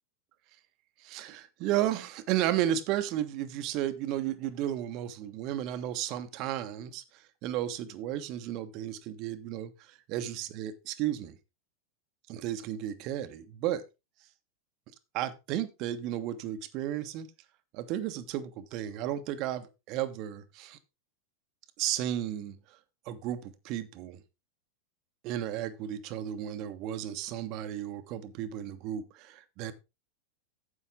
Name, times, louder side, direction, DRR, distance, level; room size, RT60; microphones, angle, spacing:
voice 1, 1.0-11.4 12.3-13.8 15.1-17.3 17.7-20.8 21.8-22.6 23.0-24.2 25.2-29.7, right 12 dB, 45° right, 1.3 m, -33 dB
9.9 x 7.9 x 3.7 m
figure-of-eight pair, 90°, 0 cm